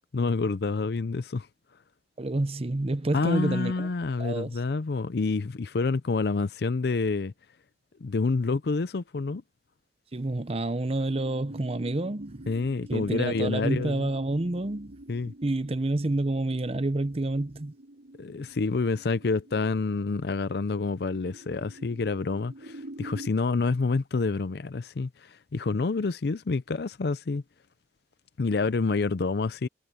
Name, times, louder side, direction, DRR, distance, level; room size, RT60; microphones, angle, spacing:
voice 1, 0.1-1.5 3.1-7.3 8.0-9.4 12.5-14.1 15.1-15.3 18.2-27.4 28.4-29.7, left 4 dB, 65° left, 0.5 m, -28 dB
voice 2, 2.2-3.9 4.2-4.5 10.1-12.4 12.9-14.9 15.3-17.7, right 2 dB, 35° right, 0.7 m, -28 dB
sound 1, 11.1-23.3, right 1 dB, 75° right, 6.0 m, -47 dB
head